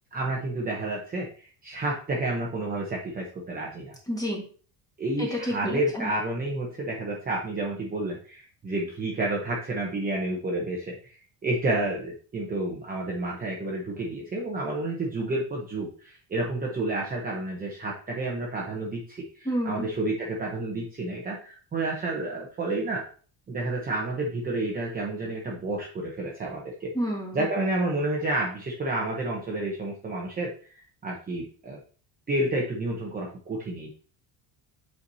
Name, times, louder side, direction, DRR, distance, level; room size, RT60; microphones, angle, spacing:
voice 1, 0.1-4.0 5.0-23.1 23.5-26.9 27.3-31.8 32.3-33.9, right 2 dB, 20° right, -2 dB, 0.9 m, -30 dB
voice 2, 4.1-4.4 5.2-6.1 19.4-19.9 26.9-27.5, equal, 10° left, -2 dB, 1.6 m, -29 dB
8.1 x 4.6 x 2.8 m, 0.41 s
cardioid pair, 180°, 46 cm